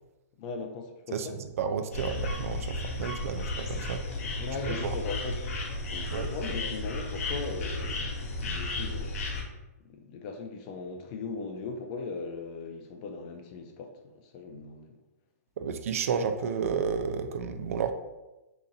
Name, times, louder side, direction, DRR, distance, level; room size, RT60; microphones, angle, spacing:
voice 1, 0.4-1.3 4.4-9.3 9.8-15.0, left 4 dB, 30° left, 4 dB, 0.3 m, -39 dB
voice 2, 1.1-4.4 4.7-5.0 6.1-6.3 15.6-17.9, right 6 dB, 60° right, 7 dB, 0.3 m, -32 dB
sound 1, 1.9-9.4, left 2 dB, 60° left, 0.7 m, -34 dB
2.9 x 2.5 x 3.9 m, 1.0 s
hypercardioid pair, 160°, 9 cm